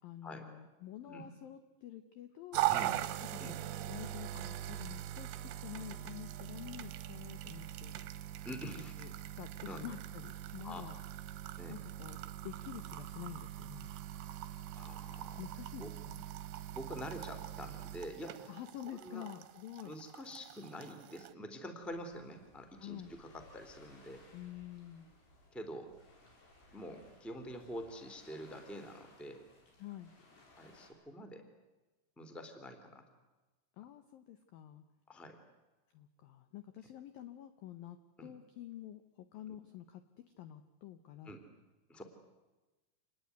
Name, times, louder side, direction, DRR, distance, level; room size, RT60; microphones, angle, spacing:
voice 1, 0.0-2.6 3.5-3.6 3.9-8.3 9.0-11.0 11.7-12.2 12.4-13.9 15.4-16.3 18.5-19.9 22.8-23.1 24.3-25.1 29.8-30.1 33.8-34.8 35.9-40.0 40.4-41.3, left 12 dB, 80° left, 9 dB, 2.1 m, -48 dB
sound 1, 2.5-21.3, right 14 dB, 75° right, 2.9 m, -41 dB
voice 2, 2.7-3.0 3.4-3.5 8.4-9.1 9.7-9.8 10.6-10.9 11.6-11.7 14.8-15.4 15.8-15.9 16.7-18.5 19.0-19.2 19.8-24.3 25.5-25.9 26.7-29.4 30.6-31.4 32.1-33.0 35.1-35.4 38.2-38.3 41.2-41.4 41.9-42.0, equal, ahead, 7 dB, 1.7 m, -46 dB
sound 2, 21.8-30.9, left 2 dB, 60° left, 7.2 m, -62 dB
27.5 x 20.0 x 9.4 m, 1.1 s
omnidirectional pair, 5.6 m